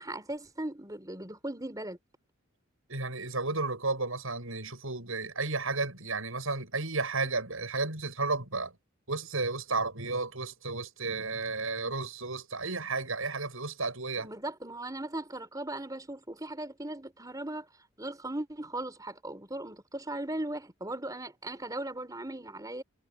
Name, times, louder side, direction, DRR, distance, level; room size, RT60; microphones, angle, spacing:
voice 1, 0.0-2.0 14.2-17.7 18.0-22.8, right 1 dB, 15° right, 4.0 m, -38 dB
voice 2, 2.9-8.7 9.1-14.3, right 3 dB, 75° right, 7.2 m, -33 dB
head